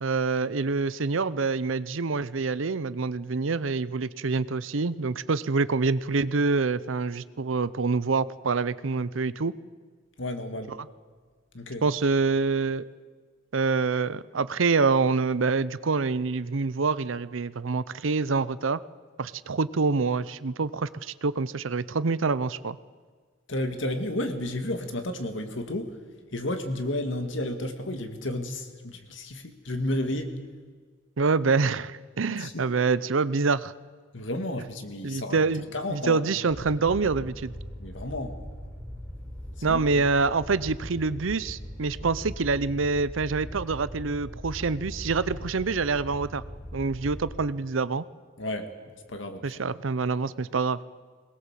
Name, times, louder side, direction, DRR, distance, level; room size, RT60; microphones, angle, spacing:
voice 1, 0.0-9.5 11.8-12.8 13.5-18.8 19.2-22.8 31.2-33.7 35.0-37.5 39.6-46.4 46.7-48.0 49.4-50.8, right 4 dB, 80° right, 17 dB, 0.7 m, -26 dB
voice 2, 10.2-10.7 11.5-11.8 23.5-25.9 26.3-30.4 32.4-32.7 34.1-35.4 35.7-36.3 37.8-38.4 39.6-40.0 48.4-48.7 49.1-49.4, left 1 dB, 65° left, 6 dB, 2.2 m, -32 dB
Fire, 36.5-47.3, equal, 10° left, 3.7 m, -40 dB
22.5 x 20.0 x 7.5 m, 1.5 s
head